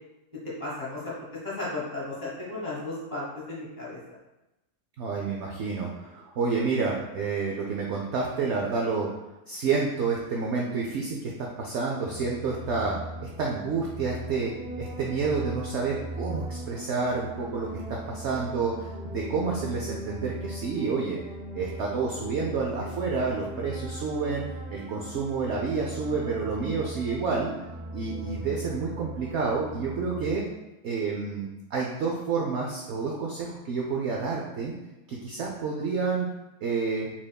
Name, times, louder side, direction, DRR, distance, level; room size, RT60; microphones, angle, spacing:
voice 1, 0.6-1.1 1.4-4.0, left 2 dB, 30° left, -7 dB, 1.6 m, -34 dB
voice 2, 5.0-9.1 9.5-21.2 21.5-27.5 27.9-30.4 30.8-34.7 35.1-36.3 36.6-37.1, right 4 dB, 70° right, -1 dB, 0.7 m, -29 dB
sound 1, 12.0-30.4, right 1 dB, 45° right, 1.7 m, -39 dB
5.1 x 3.5 x 2.2 m, 0.99 s
omnidirectional pair, 1.6 m